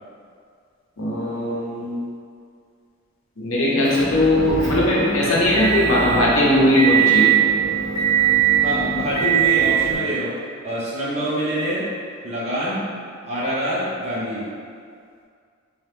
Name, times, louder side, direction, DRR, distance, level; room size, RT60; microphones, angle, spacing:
voice 1, 1.0-2.0 3.4-7.3, left 1 dB, 85° left, -5 dB, 0.7 m, -19 dB
Motor vehicle (road) / Engine, 3.8-9.9, right 9 dB, 15° left, 1.4 m, -21 dB
voice 2, 8.6-10.4 10.6-11.9 12.2-12.8 13.2-14.5, equal, 30° right, -8 dB, 0.7 m, -25 dB
2.8 x 2.3 x 3.3 m, 2.2 s
head